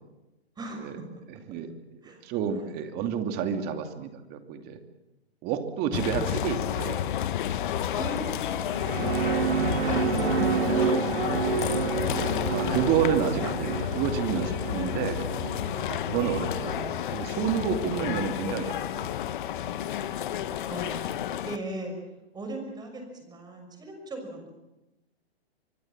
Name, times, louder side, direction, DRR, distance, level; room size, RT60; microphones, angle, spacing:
voice 1, 0.6-1.2 2.0-2.2 5.8-6.4 7.9-11.9 16.2-17.2 20.7-21.2 21.4-21.9 22.3-24.5, right 1 dB, 10° right, 4 dB, 6.1 m, -38 dB
voice 2, 1.3-1.7 2.1-4.8 5.4-7.0 12.5-15.3 15.9-19.2, right 8 dB, 30° right, 7 dB, 2.6 m, -30 dB
sound 1, 5.9-21.6, left 10 dB, 50° left, 1.5 m, -30 dB
sound 2, 8.5-17.2, right 8 dB, 65° right, 1.1 m, -30 dB
24.5 x 23.5 x 7.5 m, 0.98 s
figure-of-eight pair, 120°, 32 cm